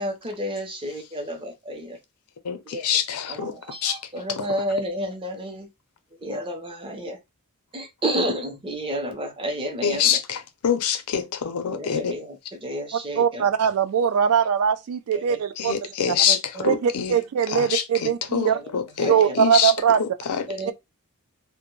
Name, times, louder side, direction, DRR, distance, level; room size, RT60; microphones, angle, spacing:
voice 1, 0.0-2.0 2.7-2.8 3.3-5.7 6.2-7.2 7.7-10.2 11.7-13.5 15.1-15.4 16.1-16.7 18.5-18.7 19.0-19.4 20.5-20.7, equal, 25° right, 0.5 m, -31 dB
voice 2, 2.8-4.5 9.8-12.2 15.6-17.2 17.5-20.7, left 8 dB, 85° left, 0.5 m, -26 dB
voice 3, 13.2-15.7 16.6-18.6 19.1-20.0 20.7-20.8, right 8 dB, 75° right, 0.3 m, -21 dB
2.1 x 2.1 x 3.0 m
head